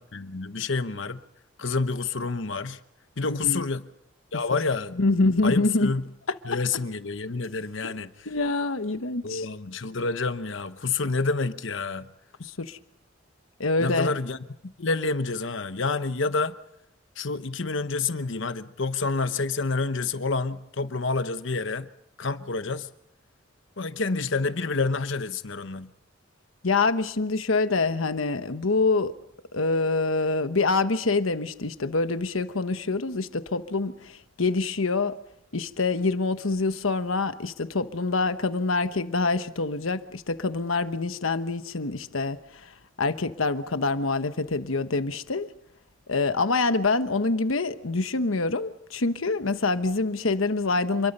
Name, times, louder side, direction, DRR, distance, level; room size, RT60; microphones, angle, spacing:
voice 1, 0.1-1.2 1.6-2.8 3.2-3.9 4.3-5.0 5.4-6.0 6.4-8.3 9.2-12.1 13.8-14.4 14.8-16.5 17.2-21.9 22.2-22.9 23.8-25.9, left 4 dB, 65° left, 1.0 m, -28 dB
voice 2, 3.2-3.6 5.0-5.9 7.8-7.9 8.3-9.5 12.4-12.8 13.6-14.1 26.6-29.1 29.5-35.2 35.5-42.4 43.0-45.5 46.1-51.1, left 3 dB, 85° left, 1.1 m, -25 dB
28.0 x 22.0 x 5.5 m
head